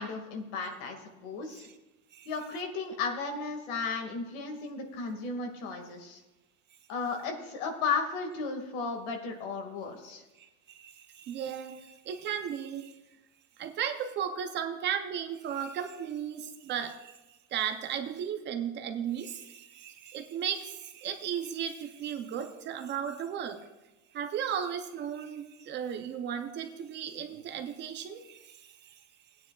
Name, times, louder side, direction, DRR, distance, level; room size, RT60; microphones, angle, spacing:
voice 1, 0.0-1.7 2.3-6.2 6.9-10.2, left 4 dB, 80° left, 4 dB, 2.0 m, -34 dB
voice 2, 10.4-13.0 13.6-17.2 17.5-23.6 24.1-29.0, right 8 dB, 30° right, 7 dB, 0.5 m, -35 dB
18.5 x 9.4 x 2.3 m, 1.1 s
cardioid pair, 175°, 36 cm